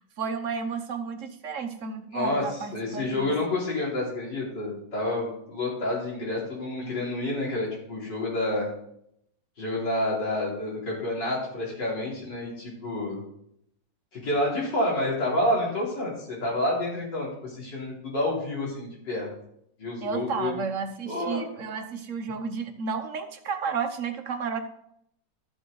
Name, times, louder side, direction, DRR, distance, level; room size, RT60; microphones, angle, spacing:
voice 1, 0.0-3.3 20.0-24.6, right 5 dB, 50° right, 7 dB, 1.1 m, -32 dB
voice 2, 2.1-2.4 2.7-8.7 9.6-13.2 14.1-19.3 19.8-20.5 21.1-21.4, left 1 dB, 70° left, -4 dB, 4.1 m, -29 dB
12.5 x 6.8 x 3.9 m, 0.73 s
omnidirectional pair, 2.0 m